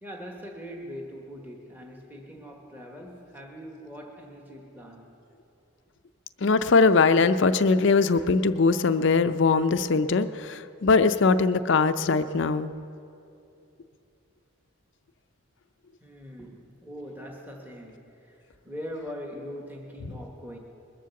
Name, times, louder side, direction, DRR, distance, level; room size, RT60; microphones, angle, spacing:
voice 1, 0.0-5.2 16.0-20.6, equal, 10° right, 0 dB, 1.2 m, -41 dB
voice 2, 6.4-12.7 20.1-20.2, left 4 dB, 55° left, 11 dB, 0.5 m, -21 dB
21.0 x 7.5 x 7.0 m, 2.7 s
head